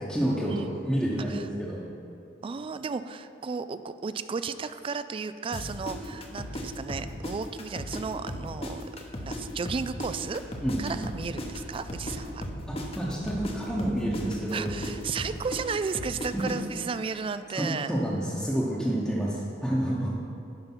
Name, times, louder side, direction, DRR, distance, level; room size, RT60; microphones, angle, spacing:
voice 1, 0.0-1.8 10.6-11.0 12.7-14.7 16.3-16.5 17.6-20.2, right 1 dB, 5° left, -7 dB, 1.0 m, -29 dB
voice 2, 2.4-8.8 9.2-10.4 10.8-12.5 14.5-17.9, right 5 dB, 30° right, 12 dB, 0.3 m, -34 dB
sound 1, 5.5-8.0 8.3-12.2 12.4-16.5, left 1 dB, 30° left, 0.9 m, -36 dB
sound 2, 9.6-14.4, equal, 65° left, 2.2 m, -45 dB
11.0 x 5.2 x 6.1 m, 2.5 s
head